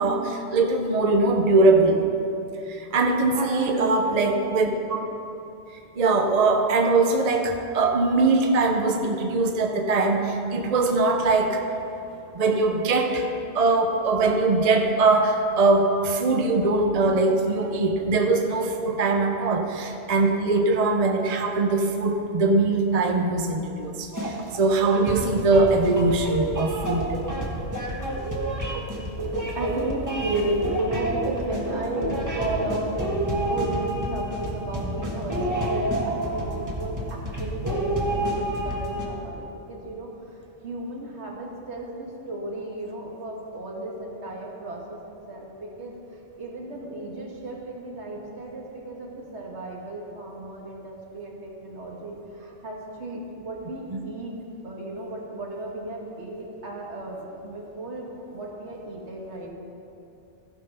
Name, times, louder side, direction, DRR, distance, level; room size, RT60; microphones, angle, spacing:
voice 1, 0.0-2.0 2.7-5.0 6.0-11.6 12.3-13.3 13.5-27.1 53.9-54.0, right 3 dB, 40° right, 3 dB, 0.7 m, -22 dB
voice 2, 3.3-4.2 29.4-40.1 40.6-45.9 46.4-54.3 54.6-59.5, right 2 dB, 70° right, -2 dB, 1.8 m, -33 dB
sound 1, 24.1-39.0, right 1 dB, 15° right, 1.5 m, -29 dB
15.0 x 5.7 x 5.5 m, 2.8 s
omnidirectional pair, 1.2 m